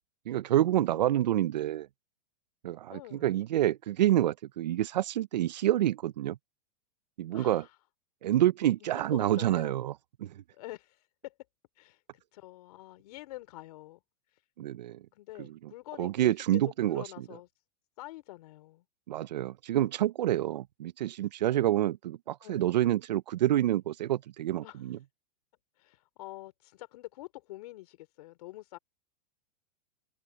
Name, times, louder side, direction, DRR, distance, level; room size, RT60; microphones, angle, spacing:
voice 1, 0.3-1.9 2.6-6.4 7.2-7.7 8.2-9.9 10.2-10.4 14.6-15.0 15.4-15.6 16.0-17.2 19.1-25.0, right 13 dB, 80° right, 0.7 m, -28 dB
voice 2, 2.9-3.3 7.3-7.7 8.8-9.8 10.5-11.3 11.8-14.0 15.1-16.6 16.9-17.5 18.0-18.8 22.4-22.7 24.6-24.8 25.8-28.8, left 18 dB, 65° left, 3.3 m, -46 dB
hypercardioid pair, 125°, 21 cm